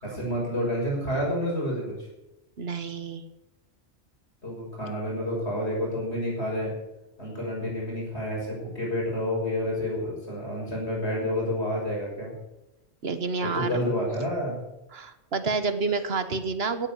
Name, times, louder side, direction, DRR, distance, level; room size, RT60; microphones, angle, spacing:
voice 1, 0.0-2.1 4.4-6.7 7.2-12.3 13.4-14.6, equal, 70° left, -3 dB, 6.7 m, -29 dB
voice 2, 2.6-3.2 13.0-13.7 14.9-16.9, right 4 dB, 65° right, 10 dB, 1.4 m, -29 dB
16.5 x 9.1 x 7.1 m, 0.94 s
omnidirectional pair, 1.1 m